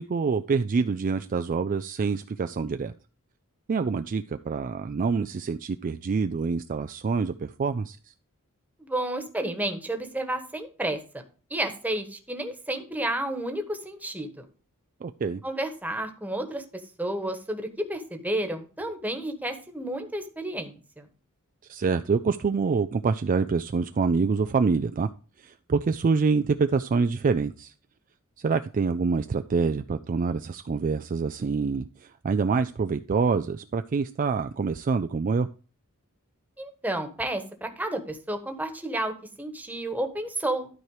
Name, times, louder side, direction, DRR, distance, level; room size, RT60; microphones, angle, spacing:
voice 1, 0.0-2.9 3.7-8.1 15.0-15.4 21.7-25.1 25.4-27.7 28.4-35.5, right 4 dB, 35° right, 9 dB, 0.4 m, -26 dB
voice 2, 8.8-11.0 11.5-14.4 15.4-16.6 17.0-21.1 36.6-40.7, right 1 dB, 5° right, 6 dB, 1.3 m, -31 dB
12.5 x 4.5 x 4.8 m, 0.37 s
head